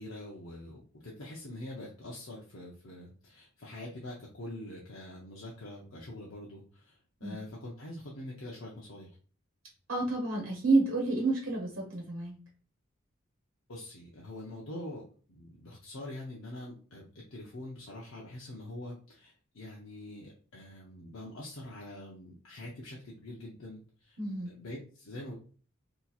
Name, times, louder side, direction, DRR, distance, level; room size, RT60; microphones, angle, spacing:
voice 1, 0.0-9.1 13.7-15.0 15.3-17.0 17.3-24.2 24.4-25.3, left 1 dB, 80° left, -3 dB, 0.7 m, -44 dB
voice 2, 9.9-12.3 24.2-24.5, right 2 dB, 75° right, -2 dB, 1.0 m, -29 dB
4.1 x 2.9 x 2.3 m, 0.41 s
head